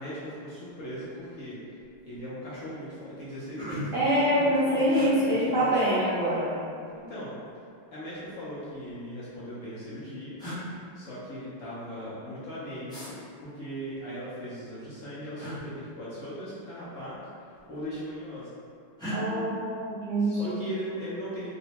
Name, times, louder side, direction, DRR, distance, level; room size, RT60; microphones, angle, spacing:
voice 1, 0.0-1.8 2.0-5.8 6.9-7.3 7.9-10.4 10.7-17.1 17.4-18.5 20.2-21.5, equal, 65° left, -10 dB, 0.8 m, -39 dB
sound 1, 1.2-1.4 1.8-2.3 2.8-2.9 3.2-4.1 4.9-5.1 6.3-7.0 8.1-9.0 9.9-10.0 10.4-10.6 12.9-13.1 15.4-15.6 16.9-17.2 17.5-18.1 19.0-19.2, left 1 dB, 5° left, 0.3 m, -39 dB
voice 2, 3.9-6.6 19.1-20.6, equal, 90° right, -11 dB, 0.5 m, -25 dB
3.7 x 2.1 x 2.8 m, 2.4 s
omnidirectional pair, 1.9 m